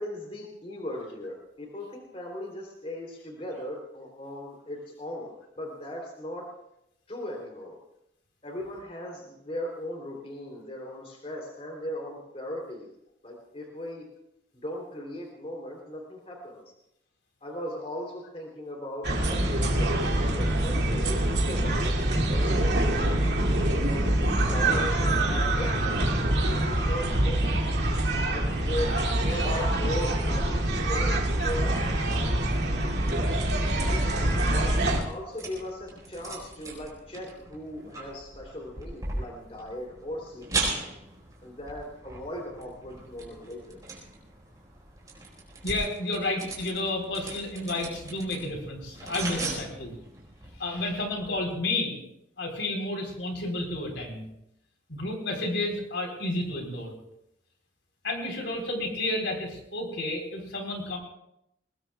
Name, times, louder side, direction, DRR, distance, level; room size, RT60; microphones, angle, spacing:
voice 1, 0.0-6.5 7.1-7.8 8.4-12.9 13.2-14.1 14.6-16.6 17.4-23.2 23.8-27.6 28.3-32.4 33.9-34.0 34.5-40.7 41.4-43.8, left 1 dB, 30° left, 0 dB, 3.2 m, -38 dB
sound 1, 19.0-35.0, right 1 dB, 60° right, 2.4 m, -25 dB
sound 2, 34.9-51.3, right 3 dB, 20° right, 4.4 m, -39 dB
voice 2, 45.6-49.9 50.6-52.0 52.4-54.3 54.9-56.9 58.0-61.0, left 2 dB, 75° left, 2 dB, 3.8 m, -31 dB
22.0 x 20.5 x 2.4 m, 0.80 s
head